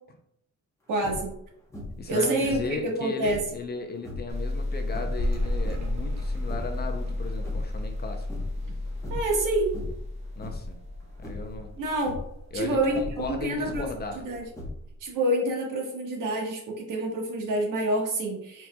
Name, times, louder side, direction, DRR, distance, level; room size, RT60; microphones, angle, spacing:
voice 1, 0.9-1.3 2.1-3.4 9.1-9.7 11.8-12.1 12.5-13.9 14.1-14.4 15.0-18.7, right 1 dB, 80° right, 0 dB, 1.3 m, -27 dB
sound 1, 1.0-1.4 1.7-2.1 2.4-3.5 4.0-4.3 4.9-6.0 6.3-6.9 7.2-8.0 8.3-8.7 9.0-9.4 9.7-10.1 10.4-10.8 11.2-11.6 12.0-12.3 12.9-14.0 14.5-15.1, left 2 dB, 10° left, 0.9 m, -39 dB
voice 2, 2.0-8.3 10.4-10.8 11.2-11.8 12.5-14.2, left 3 dB, 35° left, 5 dB, 0.5 m, -36 dB
sound 2, 4.3-11.8, left 2 dB, 20° right, 0.8 m, -33 dB
sound 3, 5.1-14.5, left 1 dB, 60° right, 0.9 m, -37 dB
4.4 x 4.2 x 2.2 m, 0.74 s
wide cardioid pair, 170°, 31 cm